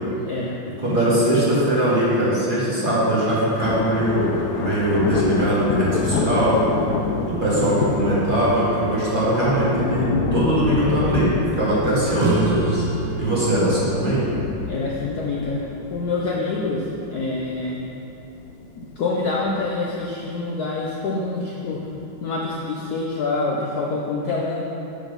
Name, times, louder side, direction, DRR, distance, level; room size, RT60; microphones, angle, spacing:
voice 1, 0.2-0.6 0.8-1.4 14.7-15.6 15.9-17.8 18.7-21.9 22.2-24.6, left 3 dB, 65° left, -3 dB, 1.0 m, -26 dB
voice 2, 0.8-6.6 7.3-12.8 13.2-14.2, right 1 dB, 25° right, -9 dB, 1.6 m, -21 dB
sound 1, 3.6-17.7 18.2-18.5 19.4-19.7 20.4-20.5 22.0-22.1, left 4 dB, 90° left, 0.8 m, -27 dB
sound 2, 12.2-17.3, right 4 dB, 85° right, 1.6 m, -30 dB
7.4 x 5.1 x 5.1 m, 2.9 s
omnidirectional pair, 2.2 m